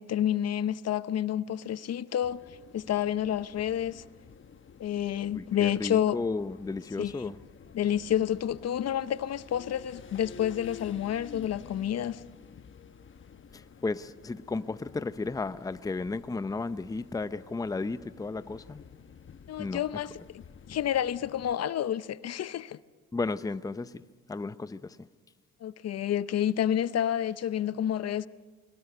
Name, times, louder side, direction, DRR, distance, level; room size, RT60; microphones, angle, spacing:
voice 1, 0.0-2.4 2.7-4.0 4.8-6.2 7.0-7.3 7.7-12.2 19.5-22.8 25.6-28.3, left 10 dB, 55° left, 0.7 m, -29 dB
sound 1, 2.2-21.6, left 6 dB, 40° left, 1.0 m, -51 dB
voice 2, 5.3-7.4 13.5-18.8 19.6-19.8 23.1-24.0 24.3-25.0, left 3 dB, 10° left, 0.6 m, -34 dB
22.5 x 21.0 x 6.8 m
cardioid pair, 90°, 30 cm